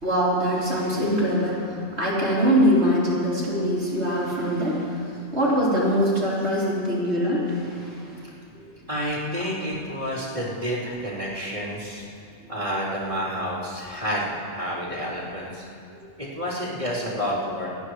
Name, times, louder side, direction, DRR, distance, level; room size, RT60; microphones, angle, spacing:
voice 1, 0.0-8.2 8.5-8.7 9.4-9.5 15.9-16.0, equal, 65° right, -7 dB, 3.6 m, -23 dB
voice 2, 8.9-12.0 12.5-14.3 14.5-15.7 16.2-17.7, equal, 35° right, -9 dB, 3.9 m, -29 dB
29.5 x 10.0 x 3.3 m, 2.5 s
omnidirectional pair, 1.2 m